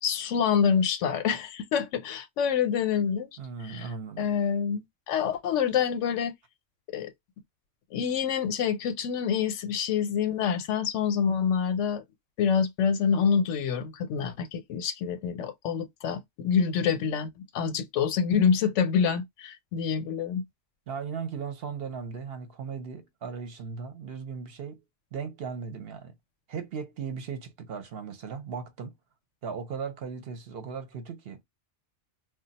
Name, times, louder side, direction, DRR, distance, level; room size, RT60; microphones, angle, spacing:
voice 1, 0.0-3.3 3.6-3.9 4.2-6.3 6.9-7.1 7.9-12.0 12.4-20.4, left 7 dB, 80° left, 0.9 m, -27 dB
voice 2, 3.4-4.3 20.9-24.8 25.1-26.1 26.5-28.9 29.4-31.4, right 6 dB, 60° right, 0.8 m, -37 dB
2.3 x 2.2 x 3.9 m
omnidirectional pair, 1.2 m